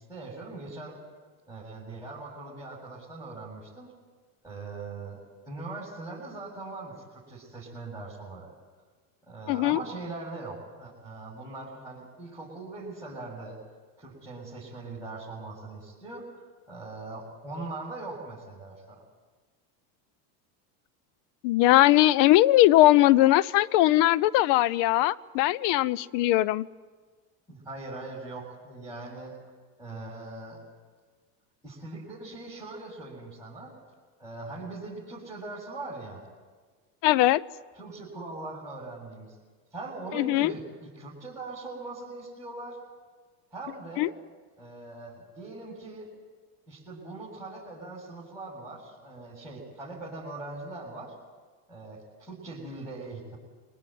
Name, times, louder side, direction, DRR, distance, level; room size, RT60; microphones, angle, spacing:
voice 1, 0.1-1.0 1.5-3.9 4.4-5.2 5.5-8.5 9.3-13.6 14.0-19.0 27.5-29.3 29.8-30.6 31.6-33.7 34.2-36.2 37.7-39.4 39.7-42.8 43.5-44.1 44.6-46.1 46.7-51.1 51.7-53.4, right 2 dB, 5° right, -7 dB, 7.6 m, -41 dB
voice 2, 9.5-9.8 21.4-26.7 37.0-37.4 40.1-40.5 44.0-44.1, left 16 dB, 65° left, 25 dB, 0.8 m, -20 dB
24.0 x 19.5 x 9.3 m, 1.5 s
supercardioid pair, 95°, 47 cm